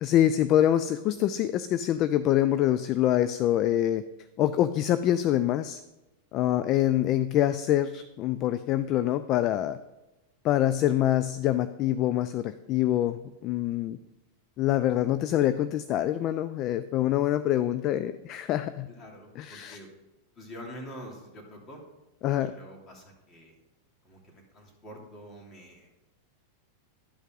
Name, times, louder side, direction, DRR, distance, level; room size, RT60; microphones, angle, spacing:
voice 1, 0.0-4.0 4.4-5.8 6.3-9.8 10.4-13.2 13.4-14.0 14.6-18.9 19.4-19.8 22.2-22.5, left 12 dB, 45° left, 13 dB, 0.3 m, -25 dB
voice 2, 18.9-19.9 20.3-21.8 22.3-23.6 24.0-25.9, equal, 25° left, -1 dB, 2.8 m, -46 dB
11.0 x 5.4 x 3.8 m, 1.0 s
hypercardioid pair, 105°, 0 cm